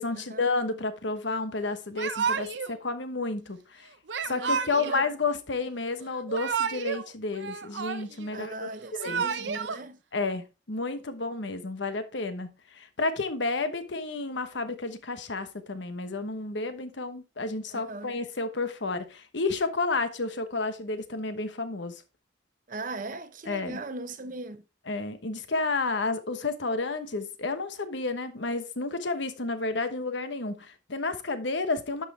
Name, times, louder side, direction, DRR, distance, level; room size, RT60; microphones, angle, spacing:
voice 1, 0.0-3.9 4.2-9.2 10.1-22.0 23.5-23.8 24.9-32.1, left 3 dB, 75° left, 1.1 m, -31 dB
Yell / Crying sobbing, 2.0-2.8 4.1-5.1 6.1-7.0 7.3-8.3 8.8-9.8, right 6 dB, 70° right, 0.7 m, -31 dB
voice 2, 4.2-5.0 8.3-10.0 17.7-18.1 22.7-24.6, right 2 dB, 45° right, 0.9 m, -39 dB
11.0 x 5.7 x 3.3 m
head